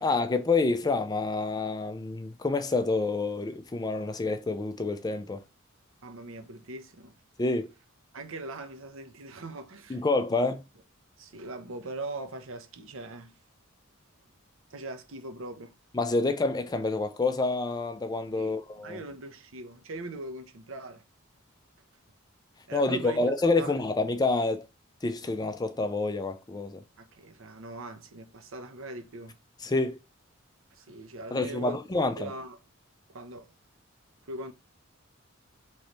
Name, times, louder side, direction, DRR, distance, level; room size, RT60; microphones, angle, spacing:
voice 1, 0.0-5.4 7.4-7.7 9.9-10.6 15.9-19.0 22.7-24.7 25.0-26.8 29.6-30.0 31.3-32.3, left 3 dB, 20° left, 0.4 m, -28 dB
voice 2, 6.0-7.2 8.1-10.0 11.2-13.4 14.7-15.7 18.4-21.0 22.7-23.2 23.5-23.7 27.0-29.4 30.7-31.8 32.2-32.6 33.1-33.5 34.2-34.5, right 2 dB, 75° right, 0.7 m, -41 dB
3.1 x 3.1 x 3.9 m
head